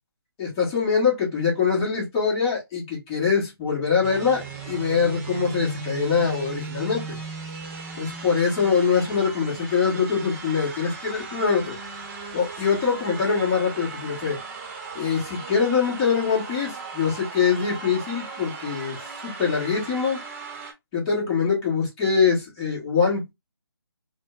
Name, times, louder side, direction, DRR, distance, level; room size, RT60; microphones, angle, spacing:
voice 1, 0.4-7.2 8.0-11.8 12.3-14.4 14.9-19.0 19.2-20.2 20.9-23.3, left 6 dB, 15° left, 1.2 m, -23 dB
sound 1, 4.0-20.7, right 4 dB, 35° right, 0.9 m, -37 dB
4.3 x 2.1 x 2.4 m
figure-of-eight pair, 160°, 13 cm